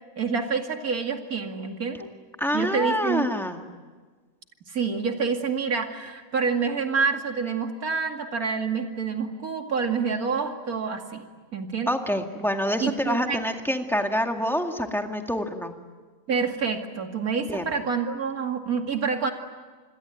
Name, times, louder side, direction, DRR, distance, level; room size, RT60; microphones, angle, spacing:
voice 1, 0.2-2.1 2.5-3.3 4.7-11.2 11.5-11.9 12.8-13.4 16.3-19.3, right 5 dB, 85° right, 4 dB, 2.8 m, -27 dB
voice 2, 2.4-3.6 11.9-15.7 17.5-17.7, equal, ahead, 4 dB, 2.0 m, -26 dB
27.5 x 22.0 x 9.1 m, 1.4 s
omnidirectional pair, 1.5 m